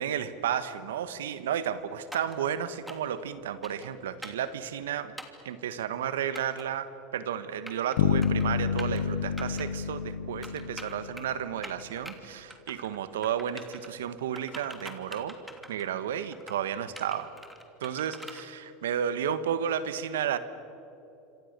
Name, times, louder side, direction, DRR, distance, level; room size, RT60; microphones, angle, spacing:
voice 1, 0.0-5.1 5.4-15.3 15.7-17.3 17.8-20.4, right 9 dB, 85° right, 13 dB, 1.4 m, -32 dB
sound 1, 2.1-2.4 2.9-3.2 3.6-3.9 4.2-4.5 5.2-5.4 6.4-6.6 7.4-8.0 8.2-8.5 8.8-9.0 9.4-9.7 10.4-11.3 11.6-12.1 12.5-13.0 13.2-13.9 14.4-15.9 16.3-16.6 17.0-18.4, equal, 5° right, 3.0 m, -44 dB
sound 2, 8.0-11.7, left 7 dB, 80° left, 0.9 m, -29 dB
26.5 x 26.5 x 6.8 m, 2.9 s
hypercardioid pair, 100°, 0 cm